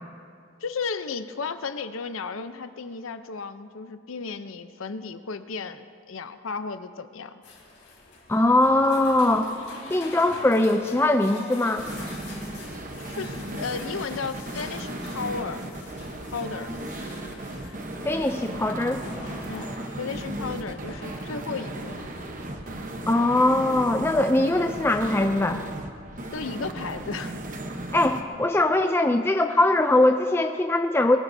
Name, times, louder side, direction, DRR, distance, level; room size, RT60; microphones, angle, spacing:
voice 1, 0.6-7.4 13.0-15.6 16.3-16.7 19.5-22.1 26.3-27.4, left 5 dB, 90° left, 11 dB, 0.7 m, -34 dB
sound 1, 7.4-22.9, left 3 dB, 60° left, 3.5 m, -45 dB
voice 2, 8.3-9.5 9.9-11.9 18.0-19.0 23.1-25.6 27.9-31.2, left 2 dB, 10° left, 6 dB, 0.3 m, -21 dB
sound 2, 11.8-28.2, right 1 dB, 40° right, 1.0 m, -35 dB
21.5 x 19.5 x 2.7 m, 2.3 s
head